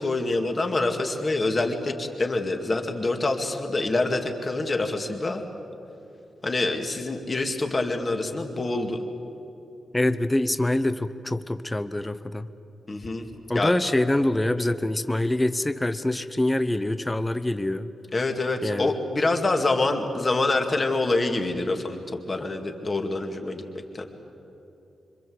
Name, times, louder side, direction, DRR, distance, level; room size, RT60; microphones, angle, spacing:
voice 1, 0.0-5.5 6.4-9.1 12.9-13.3 13.5-13.7 18.1-24.0, left 2 dB, 25° left, 4 dB, 2.2 m, -26 dB
voice 2, 9.9-12.5 13.5-17.9 18.6-18.9, left 1 dB, 10° left, 11 dB, 0.7 m, -25 dB
26.5 x 25.0 x 7.9 m, 2.9 s
wide cardioid pair, 145°, 0 cm